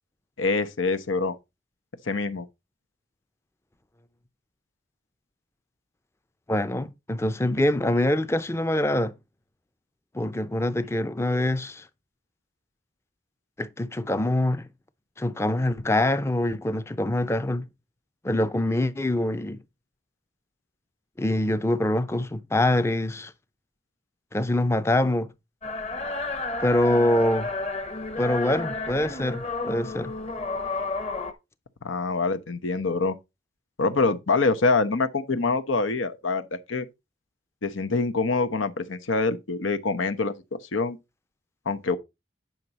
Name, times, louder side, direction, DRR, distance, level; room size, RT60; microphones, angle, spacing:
voice 1, 0.4-1.3 2.1-2.5 31.8-33.2 33.8-36.9 37.6-41.0 41.7-42.0, left 3 dB, 90° left, 0.9 m, -25 dB
voice 2, 6.5-9.1 10.1-11.8 13.6-14.6 15.2-17.7 18.2-19.6 21.2-23.3 24.3-25.3 26.6-27.5 28.2-30.1, left 1 dB, 15° left, 0.5 m, -24 dB
sound 1, 25.6-31.3, left 3 dB, 35° left, 1.0 m, -31 dB
9.4 x 5.9 x 4.1 m
head